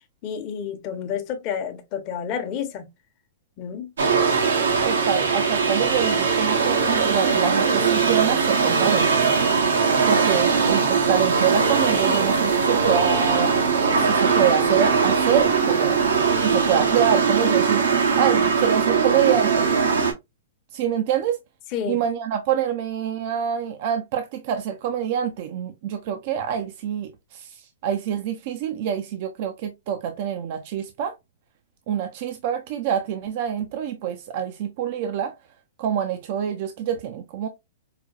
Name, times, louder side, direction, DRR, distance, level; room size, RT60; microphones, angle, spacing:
voice 1, 0.2-2.9 3.6-3.9 21.7-22.0, left 8 dB, 40° left, 0.9 m, -30 dB
sound 1, 4.0-20.1, right 5 dB, 85° right, 1.1 m, -20 dB
voice 2, 4.8-9.3 10.1-13.6 14.0-16.0 16.4-19.8 20.7-21.4 21.9-31.2 31.9-35.3 35.8-37.5, right 9 dB, 50° right, 0.5 m, -26 dB
4.9 x 2.3 x 2.4 m
hypercardioid pair, 130°, 0 cm